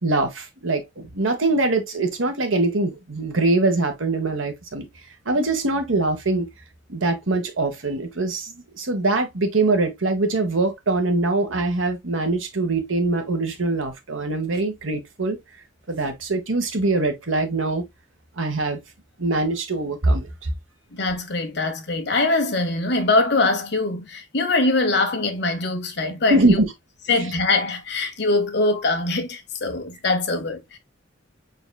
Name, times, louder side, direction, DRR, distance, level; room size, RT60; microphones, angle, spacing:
voice 1, 0.0-4.9 5.2-6.5 6.9-15.4 15.9-17.8 18.4-18.8 19.2-20.5 26.3-26.7, right 2 dB, 85° right, 1.3 m, -23 dB
voice 2, 20.9-26.6 27.1-30.8, left 2 dB, 55° left, 1.1 m, -23 dB
5.5 x 4.0 x 2.3 m
head